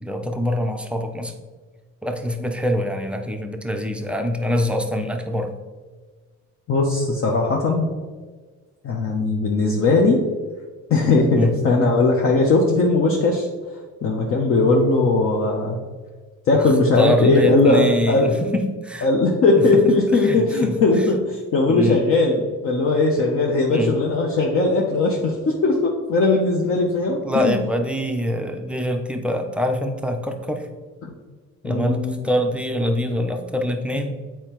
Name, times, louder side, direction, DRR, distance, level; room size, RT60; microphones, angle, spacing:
voice 1, 0.0-1.3 2.0-5.5 11.3-11.5 16.5-16.7 17.0-19.1 19.7-19.8 20.1-20.7 21.7-22.0 23.7-23.9 27.2-30.7 31.6-34.2, equal, 5° right, 4 dB, 0.5 m, -24 dB
voice 2, 6.7-7.9 8.8-10.2 10.9-13.5 13.7-15.8 16.5-18.3 19.0-27.6 31.0-31.1 31.6-32.3, left 3 dB, 45° left, -1 dB, 0.7 m, -19 dB
8.5 x 4.5 x 3.0 m, 1.4 s
cardioid pair, 150°, 30 cm